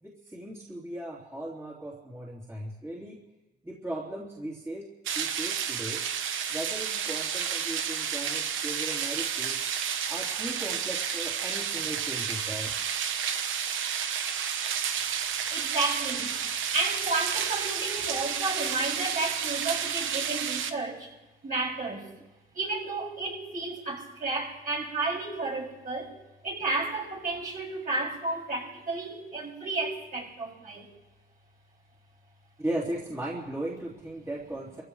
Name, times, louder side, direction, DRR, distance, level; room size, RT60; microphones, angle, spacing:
voice 1, 0.0-3.2 3.6-4.9 5.2-6.0 6.5-9.6 10.1-12.7 32.6-34.8, right 1 dB, 15° right, -6 dB, 3.4 m, -37 dB
sound 1, 5.0-20.7, right 8 dB, 80° right, 1.0 m, -31 dB
voice 2, 15.5-16.3 16.7-21.1 21.4-22.1 22.5-26.1 26.4-30.9, right 3 dB, 45° right, -3 dB, 6.8 m, -32 dB
27.5 x 15.5 x 3.3 m, 1.0 s
cardioid pair, 90°, 20 cm